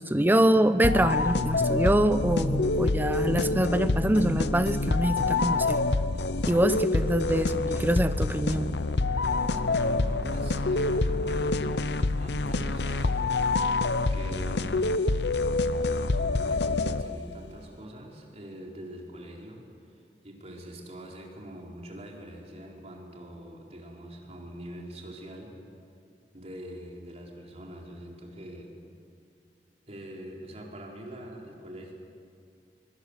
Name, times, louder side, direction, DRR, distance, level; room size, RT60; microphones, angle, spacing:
voice 1, 0.0-5.8 6.5-8.8, right 1 dB, 10° right, 11 dB, 0.8 m, -25 dB
sound 1, 0.8-17.3, left 3 dB, 70° left, 0.8 m, -26 dB
voice 2, 9.5-13.2 14.1-15.3 16.1-25.5 26.3-28.7 29.9-31.9, right 1 dB, 40° right, -1 dB, 4.4 m, -44 dB
24.5 x 24.0 x 8.2 m, 2.4 s
head